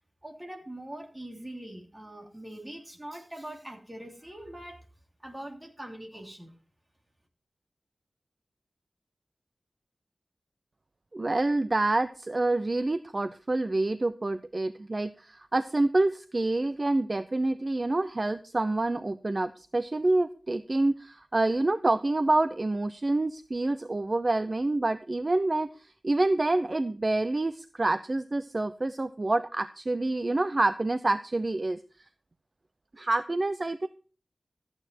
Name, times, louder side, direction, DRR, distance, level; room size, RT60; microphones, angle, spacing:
voice 1, 0.2-4.8 5.2-6.5, right 1 dB, 15° right, 2 dB, 3.0 m, -42 dB
voice 2, 11.1-31.8 33.0-33.9, right 2 dB, 35° right, 12 dB, 0.6 m, -27 dB
13.5 x 8.8 x 4.5 m, 0.37 s
wide cardioid pair, 95°, 0 cm